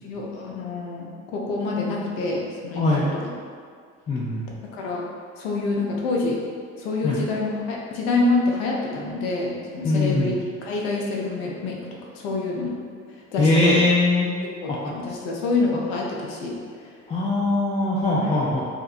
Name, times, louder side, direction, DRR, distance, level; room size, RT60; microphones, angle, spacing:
voice 1, 0.0-3.3 4.7-5.0 5.4-6.4 6.8-11.8 12.1-12.8 13.3-13.8 14.6-16.9 18.2-18.3, left 3 dB, 75° left, -2 dB, 0.5 m, -27 dB
voice 2, 2.8-3.1 4.1-4.4 7.0-7.2 9.8-10.4 13.4-14.3 14.7-14.8 17.1-18.6, left 2 dB, 20° left, -7 dB, 0.3 m, -21 dB
2.6 x 2.2 x 2.4 m, 2.1 s
hypercardioid pair, 45°, 38 cm